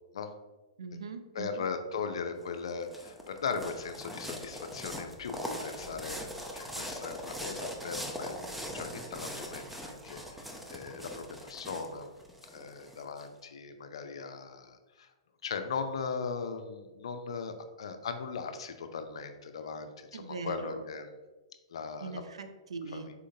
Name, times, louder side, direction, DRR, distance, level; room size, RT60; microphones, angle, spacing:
voice 1, 0.8-1.7 20.1-20.8 22.0-23.1, right 4 dB, 80° right, 8 dB, 0.4 m, -41 dB
voice 2, 1.4-12.1 12.5-15.1 15.4-21.1 21.7-22.2 22.9-23.0, left 5 dB, 70° left, 7 dB, 0.5 m, -38 dB
sound 1, 2.4-13.2, equal, 5° right, 0.5 m, -41 dB
4.2 x 3.7 x 2.7 m, 1.2 s
hypercardioid pair, 125°, 3 cm